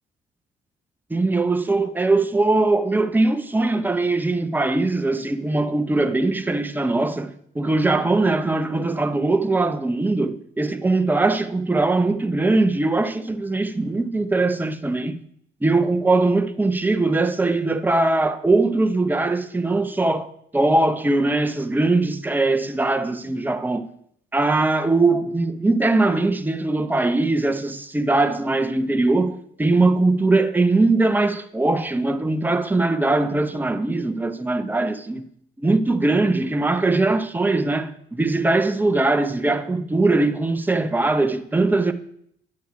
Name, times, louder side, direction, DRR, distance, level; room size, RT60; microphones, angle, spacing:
voice 1, 1.1-15.2 15.6-20.3 20.5-23.9 24.3-35.3 35.6-41.9, right 2 dB, 10° right, 0.8 m, -21 dB
9.5 x 8.0 x 4.8 m
cardioid pair, 90°, 20 cm